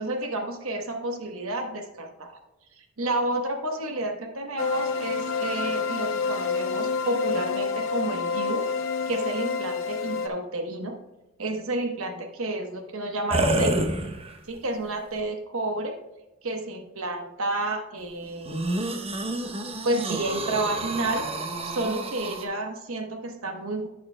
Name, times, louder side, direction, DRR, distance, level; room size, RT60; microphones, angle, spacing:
voice 1, 0.0-2.4 2.8-8.7 9.1-11.0 11.4-13.8 14.5-16.0 16.4-18.8 19.8-21.3 21.6-23.9, right 2 dB, 75° right, 4 dB, 1.0 m, -30 dB
sound 1, 4.6-10.3, left 5 dB, 65° left, 0.5 m, -28 dB
sound 2, 13.3-14.6 15.2-15.3 18.4-22.4, right 2 dB, 30° right, 0.8 m, -28 dB
11.0 x 8.7 x 2.2 m, 1.0 s
head